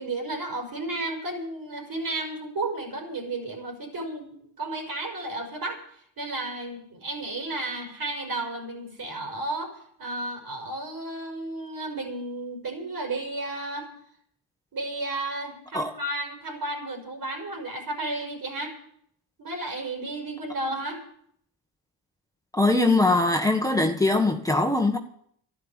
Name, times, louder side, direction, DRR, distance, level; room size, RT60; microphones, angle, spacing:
voice 1, 0.0-5.8 6.2-9.7 10.0-13.9 14.7-18.8 19.4-21.0, right 2 dB, 55° right, 5.7 m, -33 dB
voice 2, 22.5-25.0, left 2 dB, 10° left, 1.5 m, -22 dB
12.0 x 11.0 x 8.2 m
supercardioid pair, 60°, 43 cm